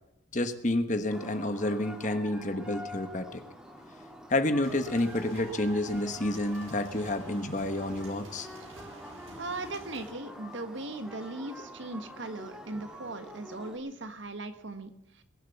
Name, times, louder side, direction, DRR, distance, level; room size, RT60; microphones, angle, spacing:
voice 1, 0.3-3.4 4.3-8.5, left 1 dB, 35° left, 9 dB, 1.3 m, -29 dB
sound 1, 1.1-13.8, equal, 5° right, 2.6 m, -46 dB
sound 2, 4.6-10.1, right 2 dB, 85° right, 4.9 m, -51 dB
voice 2, 9.4-15.2, right 2 dB, 65° right, 9 dB, 1.6 m, -39 dB
21.5 x 7.6 x 7.1 m, 0.82 s
head